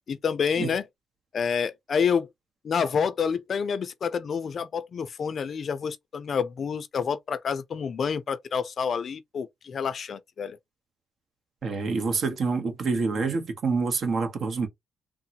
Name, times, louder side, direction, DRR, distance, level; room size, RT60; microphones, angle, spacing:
voice 1, 0.1-0.9 1.3-2.3 2.6-10.6, left 6 dB, 50° left, 0.4 m, -28 dB
voice 2, 11.6-14.7, right 4 dB, 55° right, 0.9 m, -27 dB
3.6 x 2.0 x 2.8 m
cardioid pair, 100°, 0 cm